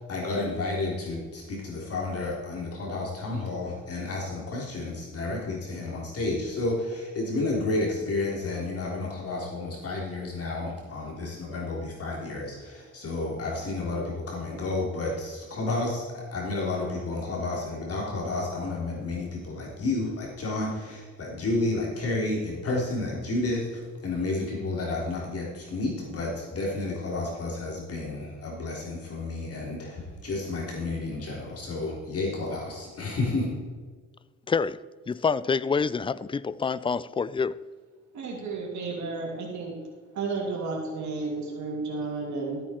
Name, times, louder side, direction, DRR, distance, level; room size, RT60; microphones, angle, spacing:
voice 1, 0.0-33.5, left 2 dB, 50° left, 3.7 m, -31 dB
voice 2, 34.5-34.8 35.1-37.6, left 5 dB, 20° left, 0.4 m, -27 dB
voice 3, 38.1-39.7 40.1-42.6, right 3 dB, 70° right, 2.7 m, -32 dB
14.0 x 8.6 x 4.5 m
cardioid pair, 90°, 30 cm